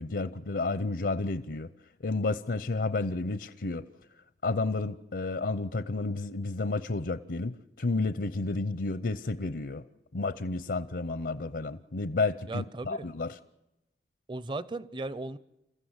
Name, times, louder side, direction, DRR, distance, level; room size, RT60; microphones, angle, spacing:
voice 1, 0.0-1.7 2.0-3.8 4.4-9.8 10.1-13.3, left 3 dB, 70° left, 0.7 m, -31 dB
voice 2, 12.5-13.0 14.3-15.4, right 2 dB, 25° right, 0.7 m, -36 dB
28.0 x 15.0 x 8.1 m
head